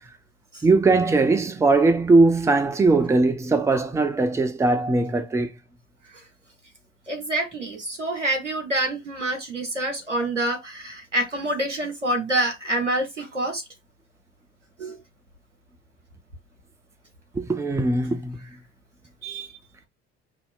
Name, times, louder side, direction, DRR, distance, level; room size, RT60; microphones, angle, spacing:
voice 1, 0.6-5.5 17.3-18.4, right 3 dB, 10° right, 0.5 m, -20 dB
voice 2, 7.1-13.6 14.8-15.0 19.2-19.5, right 1 dB, 90° right, 0.9 m, -27 dB
5.5 x 2.8 x 2.3 m
figure-of-eight pair, 60°, 36 cm